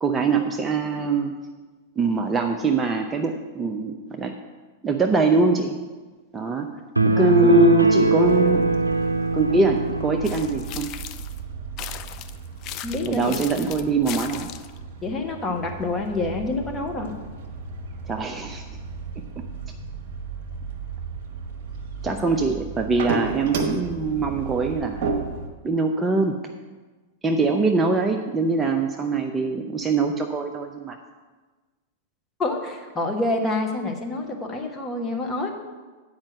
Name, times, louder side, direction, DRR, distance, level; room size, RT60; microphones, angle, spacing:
voice 1, 0.0-1.3 2.0-4.3 4.8-5.8 6.3-6.7 7.0-8.6 9.3-10.9 13.0-14.5 18.1-18.6 22.0-25.1 25.6-26.3 27.2-31.0, right 3 dB, 15° right, 3 dB, 0.6 m, -23 dB
sound 1, 7.0-10.5, right 3 dB, 90° right, 0.4 m, -21 dB
voice 2, 7.1-7.6 12.8-13.7 15.0-17.1 32.4-35.5, left 2 dB, 20° left, 2 dB, 1.4 m, -27 dB
sound 2, 8.0-25.5, right 4 dB, 50° right, 1.3 m, -34 dB
sound 3, 10.2-11.4 11.8-14.8, left 12 dB, 40° left, 0.4 m, -37 dB
8.8 x 5.3 x 7.3 m, 1.3 s
figure-of-eight pair, 95°, 0 cm